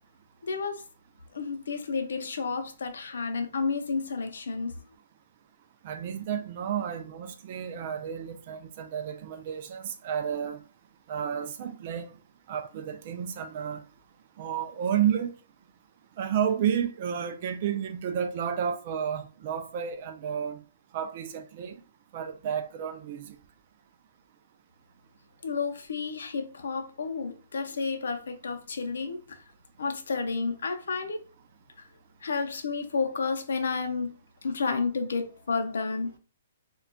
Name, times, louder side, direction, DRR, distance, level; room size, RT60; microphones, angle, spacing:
voice 1, 0.4-0.8 1.3-4.8 25.4-29.4 29.8-31.2 32.2-34.1 34.4-36.1, left 4 dB, 80° left, 0.5 m, -31 dB
voice 2, 5.8-10.6 11.1-12.1 12.5-13.8 14.4-15.3 16.2-20.6 20.9-21.7 22.1-23.4, right 8 dB, 40° right, 0.3 m, -31 dB
2.2 x 2.2 x 3.7 m
hypercardioid pair, 165°, 0 cm